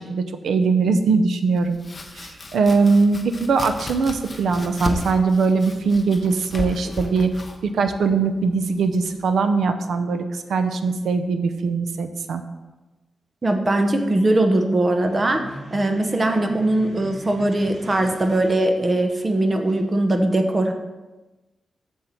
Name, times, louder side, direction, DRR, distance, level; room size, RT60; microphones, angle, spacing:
voice 1, 0.0-1.8 2.1-7.3 7.6-12.4, right 4 dB, 90° right, 8 dB, 0.7 m, -21 dB
Domestic sounds home sounds, 1.5-9.3, left 2 dB, 25° left, 0.7 m, -35 dB
voice 2, 13.4-15.4 15.7-20.7, right 1 dB, 25° right, 5 dB, 0.8 m, -20 dB
sound 1, 14.8-19.8, right 1 dB, 50° right, 2.9 m, -42 dB
7.8 x 7.2 x 4.5 m, 1.1 s
wide cardioid pair, 170°, 0 cm